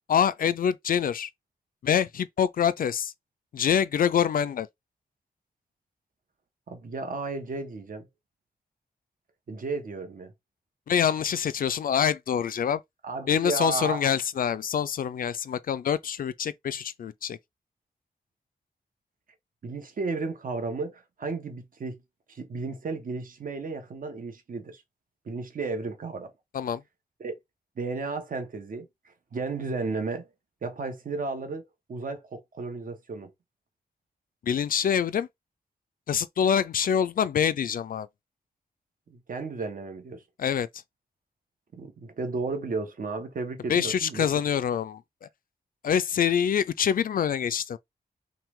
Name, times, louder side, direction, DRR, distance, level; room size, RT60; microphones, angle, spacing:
voice 1, 0.1-1.3 1.8-3.1 3.5-4.7 10.9-12.8 13.3-17.4 26.5-26.8 34.4-35.3 36.1-38.1 40.4-40.7 43.7-45.0 45.8-47.8, left 8 dB, 60° left, 0.4 m, -25 dB
voice 2, 6.7-8.1 9.5-10.3 13.0-14.1 19.6-22.0 22.3-24.8 25.3-26.3 27.2-27.4 27.8-30.3 30.6-33.3 39.1-40.2 41.7-44.3, right 3 dB, 60° right, 1.1 m, -33 dB
5.8 x 2.3 x 3.5 m
wide cardioid pair, 140°, 16 cm